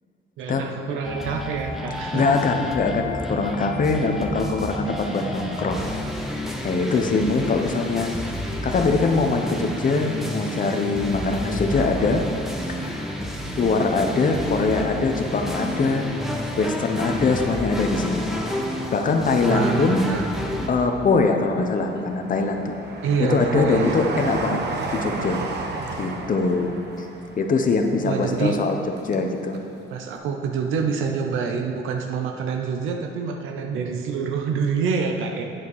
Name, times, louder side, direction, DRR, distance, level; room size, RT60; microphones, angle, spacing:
voice 1, 0.4-2.4 19.5-20.2 23.0-24.0 28.0-28.6 29.9-35.4, right 5 dB, 90° right, 4 dB, 0.7 m, -26 dB
sound 1, 1.0-20.7, left 1 dB, ahead, 1.0 m, -30 dB
voice 2, 2.1-5.8 6.3-8.1 8.6-12.2 12.7-13.1 13.6-18.3 18.9-20.1 20.7-22.7 23.2-24.6 24.9-25.4 26.0-27.1 27.4-28.8 29.0-29.6, left 3 dB, 45° left, 4 dB, 0.9 m, -23 dB
Train, 17.3-18.6 19.0-20.0 20.5-29.3 29.5-29.6, right 3 dB, 60° right, 1.0 m, -34 dB
8.4 x 7.4 x 4.8 m, 2.7 s
cardioid pair, 90°, 20 cm